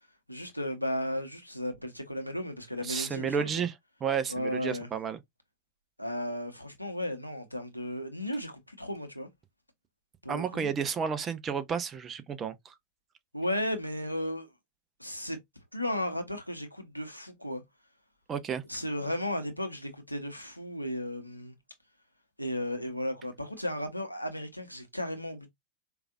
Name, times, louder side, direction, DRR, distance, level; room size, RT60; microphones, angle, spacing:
voice 1, 0.3-3.7 4.3-4.9 6.0-9.3 10.2-10.7 13.3-14.5 15.0-15.4 15.7-17.6 18.7-21.5 22.4-25.5, left 1 dB, 90° left, 0.9 m, -34 dB
voice 2, 2.8-3.7 4.0-5.2 10.3-12.7 18.3-18.6, right 7 dB, 25° right, 0.7 m, -31 dB
4.7 x 2.5 x 2.5 m
figure-of-eight pair, 90°, 0 cm